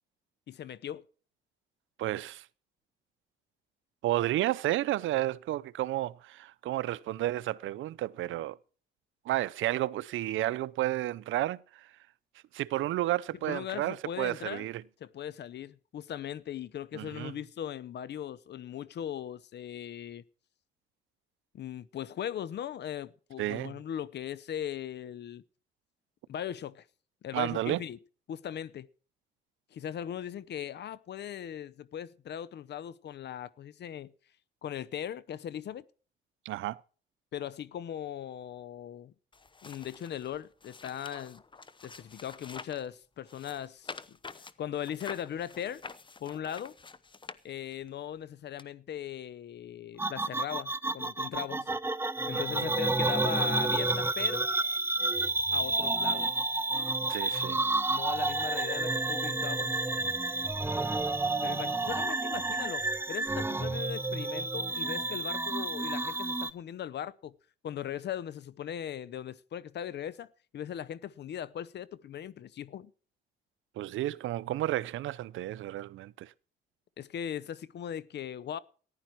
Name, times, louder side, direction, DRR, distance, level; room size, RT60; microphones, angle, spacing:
voice 1, 0.5-1.0 13.4-14.7 15.0-20.2 21.5-25.4 26.3-26.9 27.2-28.0 28.3-28.9 29.7-34.1 34.6-35.8 37.3-39.1 39.6-41.4 41.8-44.0 44.6-45.8 46.2-46.8 47.4-51.7 52.3-54.5 55.5-56.3 57.9-59.7 61.4-67.3 67.6-70.3 70.5-72.9 77.0-78.6, left 10 dB, 60° left, 0.7 m, -39 dB
voice 2, 2.0-2.5 4.0-8.6 9.2-12.0 12.5-14.8 16.9-17.3 23.4-23.7 27.3-27.8 36.4-36.8 52.3-52.7 57.1-57.6 73.8-76.3, right 15 dB, 80° right, 0.6 m, -32 dB
sound 1, 39.3-42.9 43.3-47.9 48.6-48.7, left 4 dB, 25° left, 0.9 m, -47 dB
sound 2, 50.0-66.5, right 2 dB, 10° right, 0.6 m, -30 dB
14.5 x 11.0 x 4.5 m
cardioid pair, 90°, 20 cm